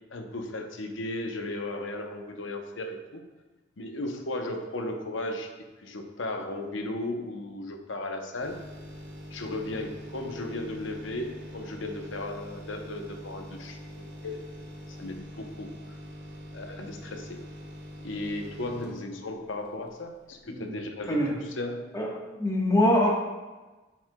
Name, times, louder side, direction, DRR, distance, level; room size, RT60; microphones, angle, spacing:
voice 1, 0.1-3.2 3.8-5.5 5.8-8.6 9.3-14.4 14.9-16.0 16.5-17.4 18.0-21.2 21.6-21.9, left 2 dB, 90° left, 5 dB, 0.8 m, -35 dB
sound 1, 8.4-20.0 20.4-20.5, equal, 75° right, 2.0 m, -44 dB
voice 2, 21.9-23.2, left 1 dB, 15° left, -3 dB, 1.2 m, -24 dB
7.6 x 7.4 x 2.2 m, 1.2 s
head